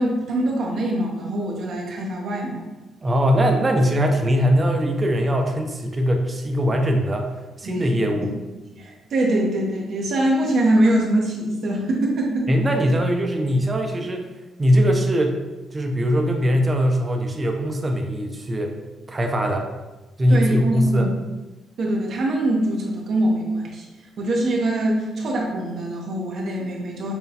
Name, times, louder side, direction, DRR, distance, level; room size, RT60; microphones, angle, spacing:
voice 1, 0.0-2.6 7.6-7.8 8.8-12.5 20.3-21.1 21.8-23.9 24.2-27.1, right 1 dB, 65° right, -1 dB, 0.7 m, -23 dB
voice 2, 3.0-7.3 7.6-8.3 12.5-14.3 14.6-15.4 15.7-18.7 19.1-19.7 20.2-21.1, equal, 25° right, 2 dB, 0.5 m, -21 dB
5.6 x 2.2 x 2.7 m, 1.1 s
cardioid pair, 90°, 0 cm